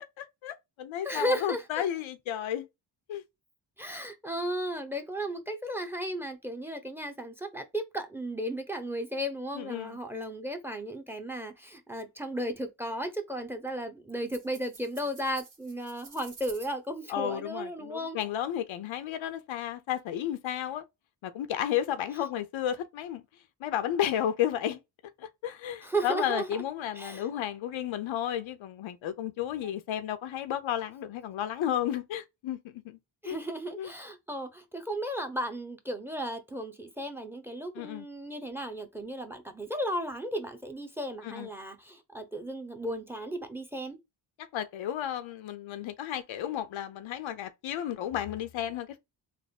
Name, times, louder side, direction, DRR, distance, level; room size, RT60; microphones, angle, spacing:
voice 1, 0.2-2.7 3.1-3.2 9.5-10.0 17.1-20.8 21.2-23.2 23.6-24.8 25.2-33.0 33.2-33.4 33.8-33.9 37.7-38.1 41.2-41.5 44.5-49.0, left 10 dB, 80° left, 0.7 m, -33 dB
voice 2, 1.0-1.8 3.8-18.2 25.8-26.6 26.9-27.3 33.2-44.0, right 1 dB, 5° right, 0.8 m, -35 dB
sound 1, 14.3-16.7, right 4 dB, 40° right, 1.5 m, -50 dB
3.5 x 2.0 x 4.1 m
cardioid pair, 85°, 46 cm